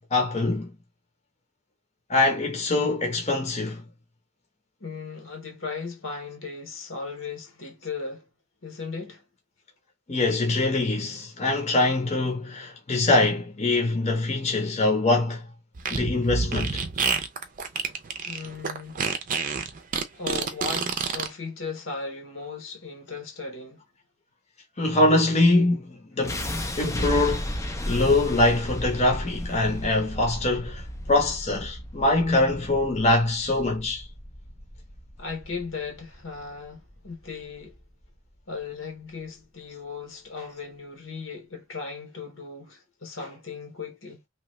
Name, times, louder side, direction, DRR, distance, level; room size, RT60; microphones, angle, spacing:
voice 1, 0.1-0.7 2.1-3.8 10.1-15.4 15.9-16.8 24.8-26.4 26.8-27.5 27.9-30.8 31.1-34.0, left 2 dB, 35° left, 0.8 m, -23 dB
voice 2, 4.8-8.2 8.6-9.2 18.2-19.1 20.1-23.8 35.2-37.8 38.5-44.2, left 4 dB, 70° left, 1.1 m, -37 dB
Fart, 15.8-21.3, right 5 dB, 40° right, 0.6 m, -28 dB
sound 1, 26.2-38.3, equal, 15° left, 0.5 m, -34 dB
3.0 x 2.3 x 3.1 m
head